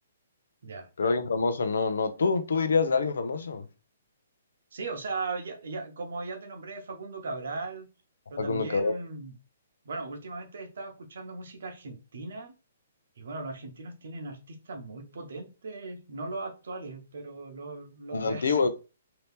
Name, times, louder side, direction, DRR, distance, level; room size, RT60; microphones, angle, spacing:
voice 1, 1.0-3.6 8.4-8.9 18.1-18.7, left 4 dB, 85° left, 0.6 m, -26 dB
voice 2, 4.7-7.9 8.3-9.4 9.8-12.5 13.2-18.7, right 3 dB, 70° right, 0.9 m, -38 dB
2.8 x 2.8 x 3.4 m
hypercardioid pair, 165°, 0 cm